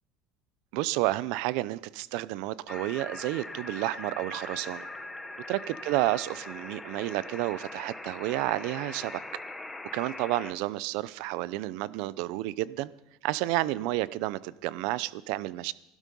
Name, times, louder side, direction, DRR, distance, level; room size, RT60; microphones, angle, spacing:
voice 1, 0.7-4.9 5.5-9.2 9.9-12.9 13.2-15.7, right 17 dB, 70° right, 19 dB, 0.6 m, -31 dB
sound 1, 2.7-10.5, left 2 dB, 10° left, 0.9 m, -41 dB
Wind, 3.5-8.0, right 4 dB, 35° right, 6.7 m, -58 dB
15.5 x 12.0 x 5.4 m, 0.90 s
supercardioid pair, 135°, 0 cm